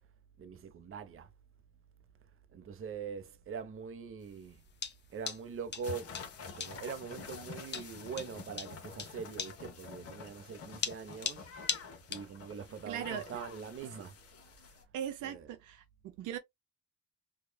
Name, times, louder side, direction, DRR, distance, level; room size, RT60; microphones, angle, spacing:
voice 1, 0.4-1.3 2.5-4.6 5.1-6.2 6.5-14.2 14.7-14.8 15.2-15.5, right 6 dB, 45° right, 0.7 m, -43 dB
sound 1, 4.2-12.3, left 6 dB, 35° left, 0.8 m, -39 dB
sound 2, 5.8-14.8, left 5 dB, 50° left, 1.2 m, -48 dB
voice 2, 12.9-13.3 14.9-16.4, right 10 dB, 85° right, 0.7 m, -39 dB
4.9 x 2.3 x 2.3 m
cardioid pair, 90°, 30 cm